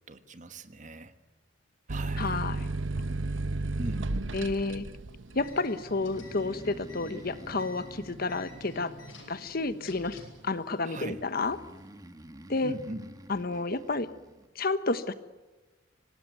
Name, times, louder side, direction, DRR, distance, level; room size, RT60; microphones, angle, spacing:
voice 1, 0.1-1.1 1.9-2.4 3.8-4.2 10.8-11.2 12.6-13.1, right 2 dB, 40° right, 10 dB, 1.5 m, -40 dB
sound 1, 1.9-9.2 9.6-10.3, right 2 dB, 75° right, 1.0 m, -34 dB
voice 2, 2.2-2.7 4.3-4.9 5.3-8.9 9.3-11.6 12.5-12.7 13.3-14.1 14.5-15.1, left 3 dB, 50° left, 12 dB, 1.2 m, -30 dB
sound 2, 5.3-10.4, equal, 80° left, 7.3 m, -49 dB
Breathing, 5.8-9.5 11.3-14.5, right 1 dB, 20° right, 1.5 m, -50 dB
25.5 x 18.5 x 9.4 m, 1.2 s
head